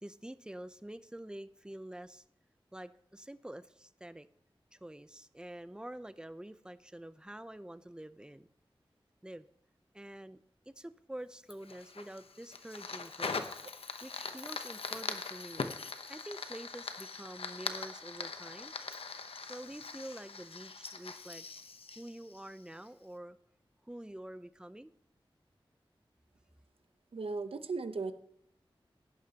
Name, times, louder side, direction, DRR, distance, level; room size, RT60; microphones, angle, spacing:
voice 1, 0.0-2.2 2.7-4.3 4.7-8.5 9.2-9.5 9.9-10.4 10.7-13.5 14.0-15.7 16.1-18.7 19.5-21.6 22.0-23.4 23.8-24.9, right 1 dB, 10° right, 14 dB, 0.6 m, -47 dB
Fire, 11.5-22.9, left 4 dB, 80° left, 0.8 m, -42 dB
voice 2, 27.1-28.1, right 4 dB, 75° right, 10 dB, 0.8 m, -37 dB
17.0 x 10.0 x 2.9 m, 0.74 s
cardioid pair, 45°, 10 cm